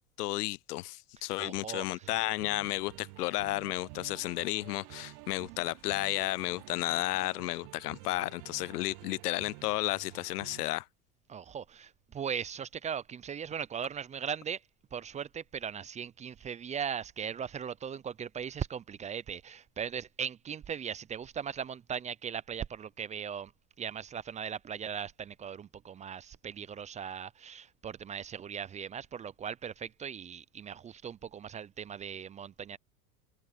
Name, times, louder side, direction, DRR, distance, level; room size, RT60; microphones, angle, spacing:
voice 1, 0.2-10.9, left 18 dB, 85° left, 0.6 m, -33 dB
voice 2, 1.4-2.1 11.3-14.6 14.9-23.5 23.8-32.8, right 7 dB, 15° right, 0.5 m, -39 dB
sound 1, 2.0-10.7, right 26 dB, 50° right, 0.9 m, -50 dB
hypercardioid pair, 115°, 45 cm